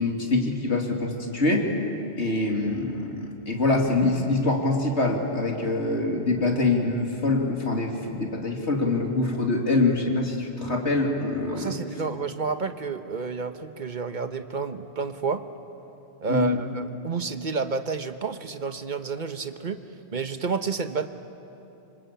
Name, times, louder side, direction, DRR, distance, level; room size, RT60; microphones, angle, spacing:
voice 1, 0.0-1.7 2.2-11.7 16.3-16.6, left 2 dB, 90° left, 1 dB, 3.1 m, -24 dB
voice 2, 11.5-15.4 16.2-19.8 20.1-21.1, right 5 dB, 45° right, 9 dB, 1.2 m, -30 dB
26.5 x 25.5 x 8.7 m, 3.0 s
omnidirectional pair, 1.1 m